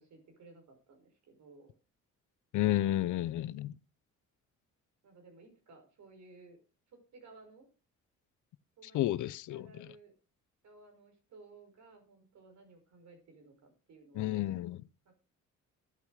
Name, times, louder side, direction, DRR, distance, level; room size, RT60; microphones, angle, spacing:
voice 1, 0.0-1.7 5.0-6.6 6.9-7.7 8.8-10.1 10.6-14.5 15.1-15.2, right 3 dB, 65° right, 5.3 m, -57 dB
voice 2, 2.5-3.7 8.9-9.7 14.1-14.8, left 14 dB, 85° left, 0.7 m, -31 dB
11.5 x 10.5 x 4.8 m
cardioid pair, 150°, 30 cm